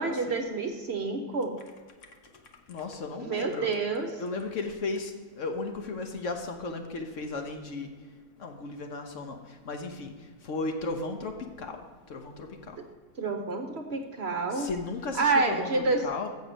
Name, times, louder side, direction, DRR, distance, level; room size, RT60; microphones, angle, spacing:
voice 1, 0.0-1.6 3.2-4.1 13.2-14.7 15.1-16.0, right 3 dB, 50° right, 5 dB, 0.9 m, -28 dB
voice 2, 2.0-3.7 4.2-12.8 14.5-16.3, left 3 dB, 60° left, 5 dB, 1.1 m, -36 dB
7.3 x 6.5 x 6.8 m, 1.5 s
omnidirectional pair, 1.6 m